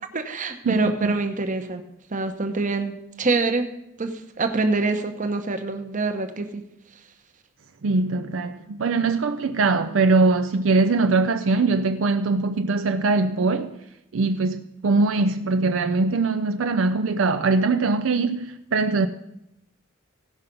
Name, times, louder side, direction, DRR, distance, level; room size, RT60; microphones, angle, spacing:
voice 1, 0.1-1.8 2.1-3.7 4.0-6.6, right 3 dB, 40° right, 0.9 m, -25 dB
voice 2, 0.7-1.1 7.8-13.7 14.1-19.1, right 3 dB, 70° right, 0.5 m, -22 dB
16.5 x 5.6 x 5.3 m
head